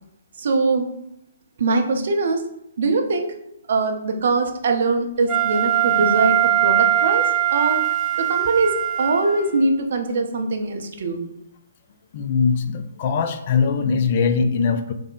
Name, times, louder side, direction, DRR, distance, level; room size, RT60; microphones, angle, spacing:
voice 1, 0.4-0.9 1.6-2.4 2.8-3.3 3.7-7.8 8.2-11.2, right 3 dB, 60° right, 4 dB, 0.5 m, -22 dB
Wind instrument woodwind instrument, 5.3-9.6, right 12 dB, 15° right, 0.7 m, -21 dB
voice 2, 12.1-14.9, left 5 dB, 45° left, 8 dB, 0.3 m, -21 dB
3.3 x 2.1 x 3.7 m, 0.81 s
figure-of-eight pair, 125°, 0 cm